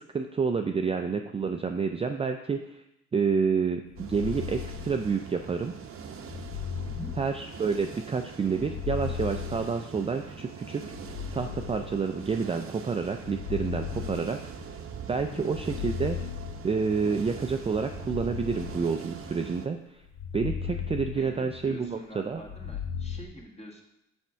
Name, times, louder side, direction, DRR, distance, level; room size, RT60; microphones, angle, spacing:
voice 1, 0.1-2.8 3.1-5.8 7.2-10.8 11.3-14.4 15.1-16.2 16.6-20.0 20.3-22.4, right 5 dB, 20° right, 5 dB, 0.4 m, -29 dB
sound 1, 3.9-5.4 6.2-7.9 8.5-10.3 10.9-12.4 13.1-14.9 15.4-17.1 17.8-19.5 20.1-21.9 22.4-23.2, left 8 dB, 65° left, 0.9 m, -37 dB
sound 2, 4.0-19.7, right 6 dB, 50° right, 0.7 m, -43 dB
voice 2, 6.8-7.1 15.1-15.5 21.1-23.8, equal, 20° left, 0 dB, 1.6 m, -45 dB
5.9 x 4.4 x 5.6 m, 0.85 s
cardioid pair, 90°, 30 cm